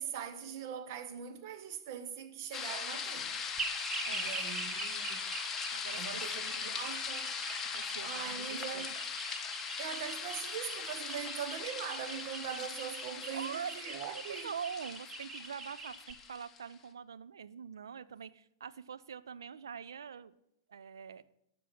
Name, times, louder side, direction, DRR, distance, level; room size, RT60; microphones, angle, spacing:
voice 1, 0.0-3.3 4.1-5.3 5.9-7.4 8.0-8.9 9.8-14.5, right 8 dB, 50° right, 1.3 m, -42 dB
sound 1, 2.5-16.6, left 6 dB, 20° left, 1.0 m, -40 dB
sound 2, 3.6-16.1, right 3 dB, 20° right, 1.4 m, -43 dB
voice 2, 4.0-4.5 5.7-6.9 7.7-8.9 13.3-13.7 14.1-20.3 20.7-21.2, right 7 dB, 65° right, 0.5 m, -44 dB
12.5 x 6.2 x 6.0 m
figure-of-eight pair, 100°, 2 cm